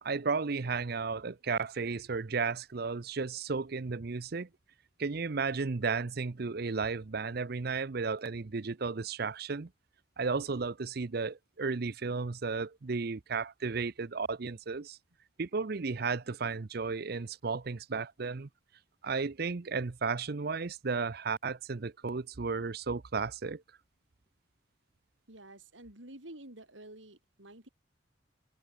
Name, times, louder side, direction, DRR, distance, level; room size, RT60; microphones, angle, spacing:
voice 1, 0.0-4.5 5.0-9.7 10.2-15.0 15.4-18.5 19.0-23.6, right 4 dB, 55° right, 0.6 m, -34 dB
voice 2, 25.3-27.7, right 1 dB, 80° right, 5.4 m, -50 dB
head